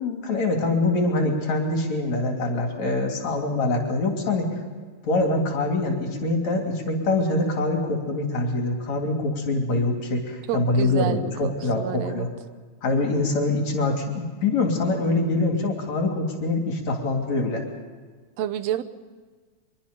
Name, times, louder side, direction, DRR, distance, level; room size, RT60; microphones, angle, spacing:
voice 1, 0.0-4.5 5.0-12.3 12.8-17.6, left 2 dB, 65° left, 2 dB, 4.3 m, -24 dB
voice 2, 10.5-12.3 18.4-18.8, right 11 dB, 70° right, 12 dB, 2.0 m, -29 dB
24.5 x 23.0 x 5.3 m, 1.4 s
omnidirectional pair, 3.5 m